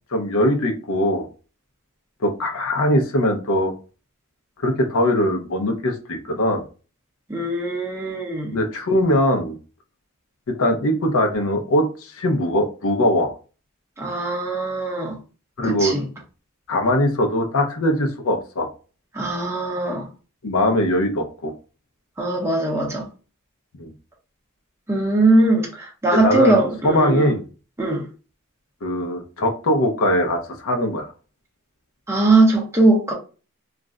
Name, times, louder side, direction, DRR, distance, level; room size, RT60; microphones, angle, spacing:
voice 1, 0.1-1.2 2.2-3.7 4.6-6.6 8.5-9.6 10.5-13.3 15.6-16.0 16.7-18.7 20.4-21.5 23.8-23.9 26.1-27.4 28.8-31.1, left 1 dB, 70° left, 0.6 m, -21 dB
voice 2, 7.3-8.5 14.0-15.1 15.6-16.0 19.1-20.1 22.2-23.0 24.9-27.3 27.8-28.0 32.1-33.1, right 2 dB, 10° right, 0.6 m, -20 dB
2.4 x 2.1 x 3.5 m
head